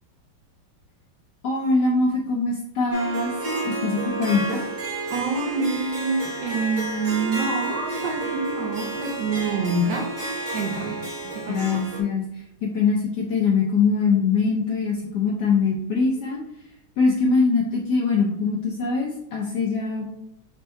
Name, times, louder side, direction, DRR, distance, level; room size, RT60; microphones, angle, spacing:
voice 1, 1.4-3.4 3.6-4.6 11.5-12.2 12.6-16.4 17.0-20.1, left 4 dB, 70° left, -2 dB, 1.0 m, -22 dB
Harp, 2.9-12.0, right 2 dB, 35° right, 0.8 m, -31 dB
voice 2, 5.1-10.1 10.5-11.0 11.3-11.8, right 3 dB, 65° right, 0 dB, 1.3 m, -26 dB
4.6 x 2.6 x 4.3 m, 0.78 s
omnidirectional pair, 2.4 m